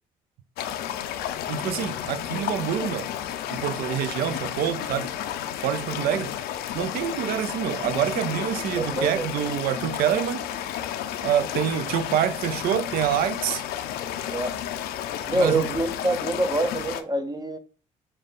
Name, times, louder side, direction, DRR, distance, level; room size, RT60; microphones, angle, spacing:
sound 1, 0.6-17.0, left 10 dB, 70° left, 0.4 m, -32 dB
voice 1, 1.5-3.1 3.5-5.1 5.6-6.3 6.7-10.5 11.2-13.6 15.3-15.7, right 10 dB, 65° right, 0.4 m, -26 dB
voice 2, 8.8-9.3 14.3-14.6 15.3-17.6, right 2 dB, 25° right, 0.6 m, -26 dB
5.0 x 2.2 x 3.5 m
hypercardioid pair, 50°, 17 cm